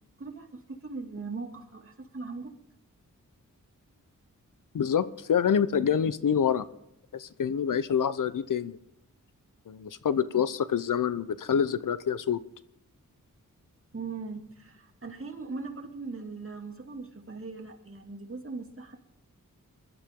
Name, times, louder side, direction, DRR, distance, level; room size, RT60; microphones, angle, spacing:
voice 1, 0.2-2.6 13.9-19.0, right 4 dB, 40° right, 2 dB, 2.4 m, -40 dB
voice 2, 4.7-6.6 7.1-8.8 9.7-12.4, left 8 dB, 75° left, 15 dB, 0.7 m, -26 dB
22.5 x 12.0 x 3.7 m, 0.82 s
wide cardioid pair, 90°, 32 cm